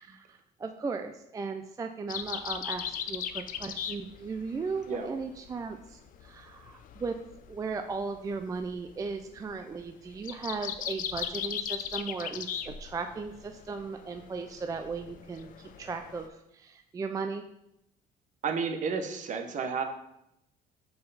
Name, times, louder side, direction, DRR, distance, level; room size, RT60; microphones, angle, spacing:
voice 1, 0.0-7.1 7.5-17.4, right 4 dB, 20° right, 6 dB, 0.3 m, -37 dB
sound 1, 2.1-16.3, left 9 dB, 55° left, 0.5 m, -39 dB
voice 2, 18.4-19.8, right 5 dB, 50° right, 6 dB, 0.8 m, -31 dB
5.4 x 4.4 x 4.0 m, 0.81 s
cardioid pair, 110°, 17 cm